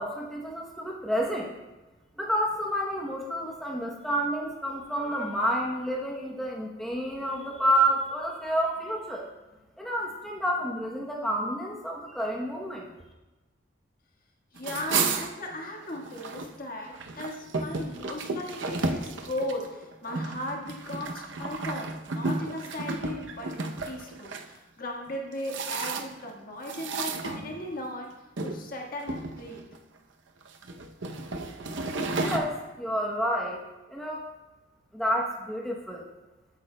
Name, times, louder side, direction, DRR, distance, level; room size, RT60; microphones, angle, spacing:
voice 1, 0.0-1.5 2.2-9.3 9.8-12.9 32.2-33.6 33.9-34.3 34.9-36.0, equal, ahead, -2 dB, 0.8 m, -29 dB
voice 2, 14.5-28.1 28.4-29.7, left 1 dB, 50° left, 0 dB, 1.5 m, -37 dB
sound 1, 14.6-16.5 16.8-24.4 25.1-26.3 26.7-27.9 28.4-28.6 29.0-29.8 30.4-32.4, right 3 dB, 75° right, 0.7 m, -32 dB
15.0 x 8.4 x 2.2 m, 1.1 s
head